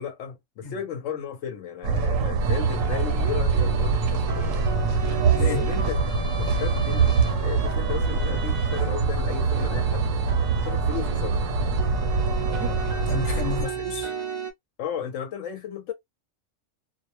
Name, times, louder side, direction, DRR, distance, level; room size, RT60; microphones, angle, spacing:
voice 1, 0.0-4.6 5.4-6.0 6.4-7.1 7.4-10.1 10.6-11.4 13.6-13.7 14.8-15.9, left 8 dB, 75° left, 0.9 m, -34 dB
sound 1, 1.8-13.6, right 4 dB, 80° right, 1.0 m, -24 dB
sound 2, 2.4-14.5, right 6 dB, 55° right, 0.3 m, -34 dB
voice 2, 5.3-5.6 13.1-14.1, left 4 dB, 40° left, 0.9 m, -32 dB
2.3 x 2.0 x 2.8 m
omnidirectional pair, 1.3 m